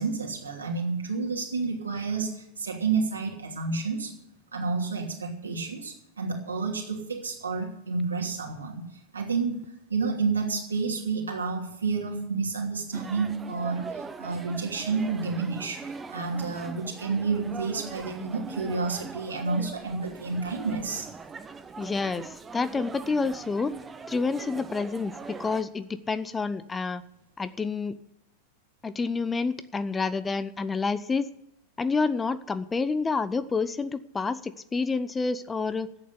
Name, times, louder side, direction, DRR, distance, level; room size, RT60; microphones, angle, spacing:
voice 1, 0.0-4.1 4.5-8.9 9.1-9.6 9.9-21.1, right 4 dB, 75° right, 0 dB, 2.8 m, -30 dB
sound 1, 12.9-25.6, right 5 dB, 15° right, 0.8 m, -41 dB
voice 2, 21.8-23.7 24.1-27.0 27.4-28.0 28.8-31.3 31.8-35.9, left 4 dB, 15° left, 14 dB, 0.5 m, -28 dB
10.5 x 8.5 x 10.0 m, 0.82 s
figure-of-eight pair, 90°, 0 cm